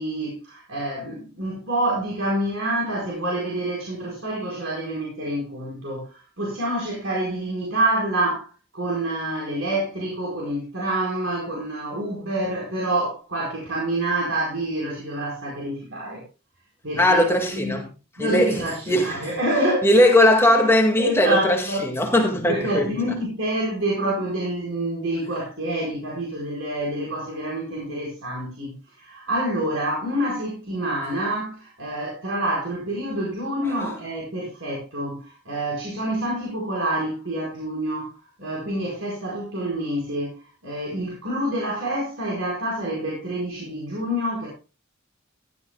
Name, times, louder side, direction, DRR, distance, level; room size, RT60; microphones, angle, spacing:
voice 1, 0.0-16.2 16.8-17.7 18.2-20.0 21.0-21.8 22.5-38.1 38.4-44.5, right 1 dB, 65° right, 4.5 m, -27 dB
voice 2, 17.0-17.9 18.2-19.3 19.8-22.9 33.8-33.9, left 1 dB, 10° left, 1.9 m, -19 dB
15.0 x 12.0 x 2.3 m
head